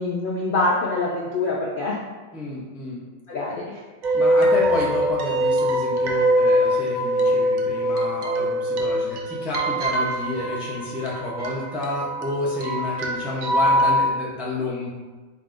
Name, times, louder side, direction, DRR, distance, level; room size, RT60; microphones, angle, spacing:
voice 1, 0.0-2.0 3.3-3.8 8.4-8.5, left 2 dB, 65° left, -4 dB, 0.5 m, -25 dB
voice 2, 2.3-3.0 4.1-14.9, left 2 dB, ahead, -5 dB, 0.3 m, -30 dB
sound 1, 4.0-14.1, equal, 80° right, 0.4 m, -22 dB
4.1 x 3.5 x 2.5 m, 1.3 s
omnidirectional pair, 1.4 m